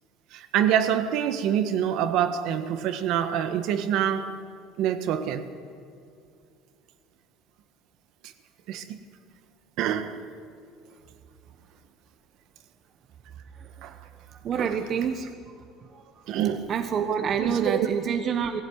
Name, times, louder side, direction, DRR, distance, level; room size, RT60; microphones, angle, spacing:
voice 1, 0.3-4.4 4.8-5.5 8.7-9.0 9.8-10.2 13.8-14.0 14.6-14.8 16.3-16.7 17.4-17.9, right 9 dB, 55° right, 1.5 m, -26 dB
voice 2, 14.4-15.3 15.9-16.0 16.7-18.6, right 7 dB, 35° right, 1.1 m, -27 dB
20.5 x 16.0 x 9.4 m
cardioid pair, 160°, 0 cm